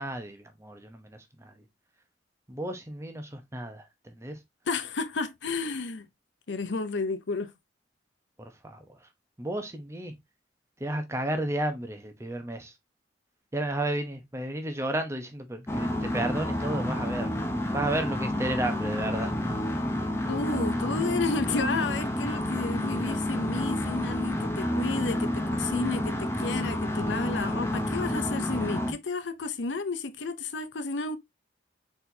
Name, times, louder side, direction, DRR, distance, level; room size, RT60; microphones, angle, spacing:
voice 1, 0.0-1.6 2.5-4.4 8.4-8.8 9.4-10.1 10.8-12.7 13.5-17.3 17.7-19.3, right 1 dB, 15° right, 0.8 m, -32 dB
voice 2, 4.7-6.1 6.5-7.5 20.3-31.2, left 4 dB, 90° left, 0.7 m, -32 dB
sound 1, 15.7-28.9, left 1 dB, 15° left, 0.8 m, -29 dB
4.3 x 4.3 x 2.7 m
head